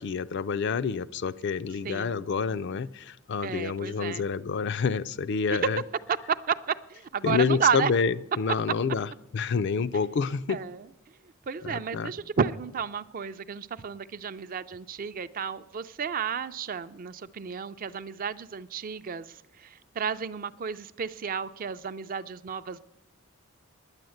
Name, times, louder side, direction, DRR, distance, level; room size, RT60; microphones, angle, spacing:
voice 1, 0.0-5.8 7.2-9.1 9.3-10.6 11.6-12.1, left 5 dB, 55° left, 15 dB, 0.4 m, -28 dB
voice 2, 1.8-2.3 3.4-4.3 5.5-5.6 6.1-7.9 10.5-22.8, right 6 dB, 40° right, 13 dB, 0.4 m, -32 dB
10.5 x 9.4 x 7.8 m, 0.89 s
head